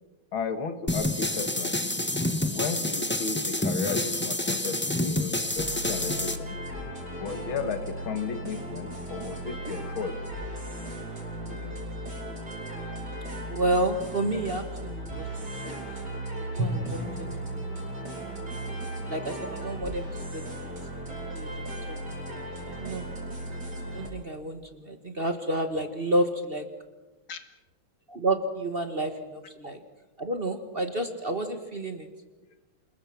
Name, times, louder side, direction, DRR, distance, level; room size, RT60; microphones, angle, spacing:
voice 1, 0.3-1.9 2.5-6.6 7.2-10.2 11.5-11.8 27.3-27.4, left 5 dB, 75° left, 9 dB, 2.4 m, -34 dB
sound 1, 0.9-6.4, left 1 dB, 15° left, 0.3 m, -28 dB
sound 2, 5.6-24.1, right 1 dB, 55° right, 5.8 m, -36 dB
voice 2, 13.5-15.8 16.3-17.3 19.1-23.1 23.9-26.7 28.1-29.8 30.2-32.1, right 1 dB, 30° right, 7 dB, 1.4 m, -31 dB
Drum, 16.6-19.5, right 1 dB, 80° right, 5.1 m, -36 dB
28.0 x 20.5 x 5.9 m, 1.2 s
omnidirectional pair, 2.2 m